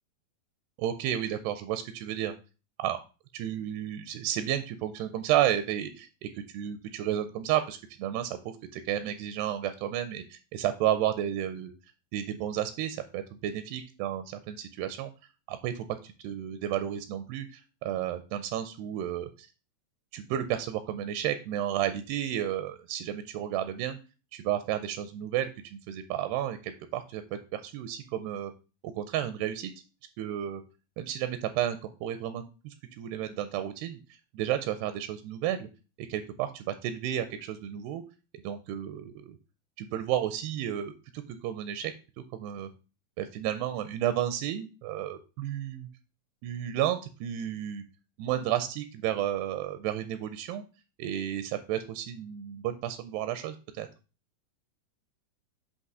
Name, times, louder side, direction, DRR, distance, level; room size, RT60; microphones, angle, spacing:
voice 1, 0.8-2.3 2.8-3.0 3.3-8.4 8.7-11.7 12.1-15.1 15.5-19.5 20.1-24.0 24.3-27.2 27.5-28.5 28.8-29.7 30.2-30.6 31.0-34.0 34.3-35.7 36.1-38.0 38.4-39.4 39.8-41.9 42.4-42.7 43.2-45.9 46.4-47.8 48.2-50.6 51.0-53.9, right 11 dB, 85° right, 10 dB, 2.6 m, -32 dB
8.3 x 2.9 x 6.0 m, 0.33 s
omnidirectional pair, 4.8 m